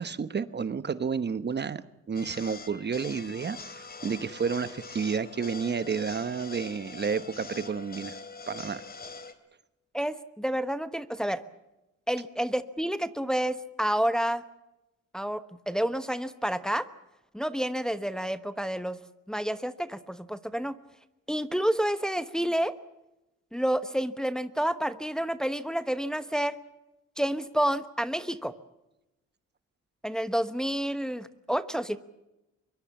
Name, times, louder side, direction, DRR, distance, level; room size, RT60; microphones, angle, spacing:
voice 1, 0.0-1.8 2.1-8.2 8.5-8.8, right 6 dB, 35° right, 13 dB, 1.1 m, -31 dB
sound 1, 2.1-9.3, left 4 dB, 30° left, 3.2 m, -43 dB
voice 2, 9.9-11.4 12.1-14.4 15.1-16.9 17.3-19.0 19.3-20.8 21.3-22.7 23.5-26.6 27.2-28.5 30.0-32.0, equal, ahead, 11 dB, 1.1 m, -29 dB
23.5 x 23.0 x 7.2 m, 0.95 s
cardioid pair, 90°, 30 cm